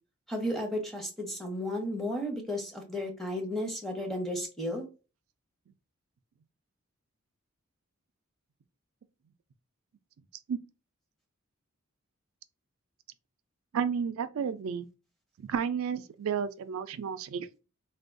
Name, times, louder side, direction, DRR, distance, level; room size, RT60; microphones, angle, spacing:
voice 1, 0.3-4.9, left 1 dB, ahead, 0.7 m, -33 dB
voice 2, 13.7-14.9 15.4-17.6, right 7 dB, 70° right, 0.4 m, -32 dB
3.4 x 2.2 x 2.5 m
head